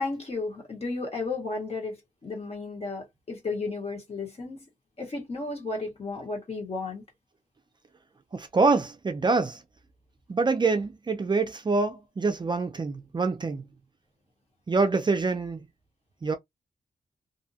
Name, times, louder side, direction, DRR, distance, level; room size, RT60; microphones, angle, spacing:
voice 1, 0.0-4.7 5.0-7.0, left 3 dB, 45° left, 1.2 m, -33 dB
voice 2, 8.3-9.6 10.3-13.7 14.7-15.6 16.2-16.4, right 4 dB, 35° right, 0.4 m, -25 dB
2.7 x 2.1 x 2.7 m
wide cardioid pair, 95°, 14 cm